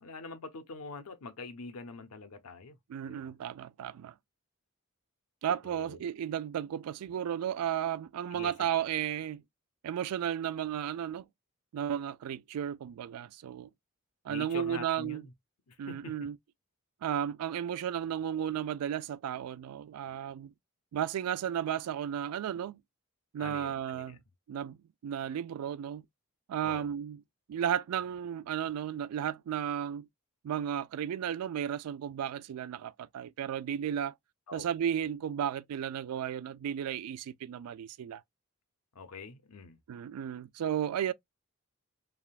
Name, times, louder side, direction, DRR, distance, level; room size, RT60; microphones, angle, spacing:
voice 1, 0.0-2.8 3.0-3.3 5.6-6.0 8.3-8.8 14.3-15.3 15.7-16.3 23.4-24.2 26.6-26.9 34.5-34.7 38.9-39.8, left 3 dB, 85° left, 0.7 m, -45 dB
voice 2, 2.9-4.1 5.4-9.4 9.8-11.3 11.7-13.7 14.2-15.2 15.8-16.3 17.0-20.5 20.9-22.8 23.3-24.2 24.5-24.8 25.0-26.0 26.5-27.2 27.5-30.1 30.4-34.1 34.5-38.2 39.9-41.1, right 9 dB, 85° right, 0.3 m, -34 dB
3.5 x 2.2 x 2.4 m
head